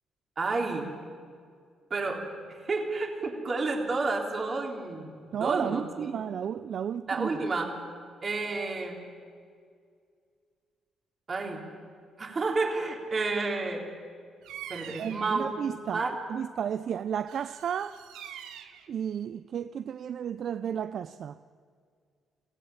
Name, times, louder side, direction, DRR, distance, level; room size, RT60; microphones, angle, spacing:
voice 1, 0.4-0.9 1.9-2.2 2.5-6.2 7.1-7.7 8.2-9.0 11.3-11.6 12.2-13.8 14.7-15.5 15.9-16.1, right 3 dB, 40° right, 3.5 m, -30 dB
voice 2, 5.3-7.3 15.0-16.0 16.3-18.0 18.9-21.4, right 8 dB, 60° right, 0.5 m, -33 dB
Bird vocalization bird call bird song, 14.4-15.4 17.3-18.9, right 10 dB, 90° right, 1.2 m, -44 dB
22.5 x 16.5 x 8.9 m
cardioid pair, 90°, 0 cm